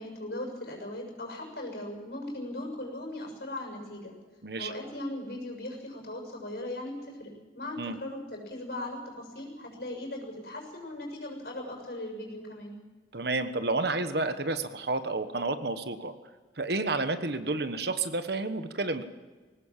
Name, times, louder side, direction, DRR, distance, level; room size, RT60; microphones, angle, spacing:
voice 1, 0.0-4.1 4.6-12.8, left 1 dB, 60° left, 1 dB, 6.7 m, -38 dB
voice 2, 13.1-16.1 16.6-19.0, right 3 dB, 60° right, 10 dB, 1.3 m, -30 dB
21.0 x 18.5 x 7.5 m, 1.3 s
head